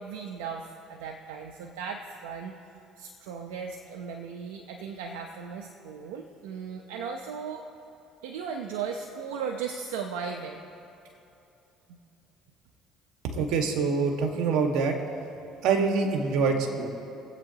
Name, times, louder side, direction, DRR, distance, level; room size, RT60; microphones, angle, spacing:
voice 1, 0.0-7.6 8.2-10.6 11.9-12.0, right 6 dB, 90° right, 2 dB, 0.8 m, -37 dB
voice 2, 13.2-14.9 15.6-16.9, right 5 dB, 75° right, 3 dB, 1.7 m, -25 dB
24.5 x 8.4 x 2.9 m, 2.9 s
supercardioid pair, 80°, 0 cm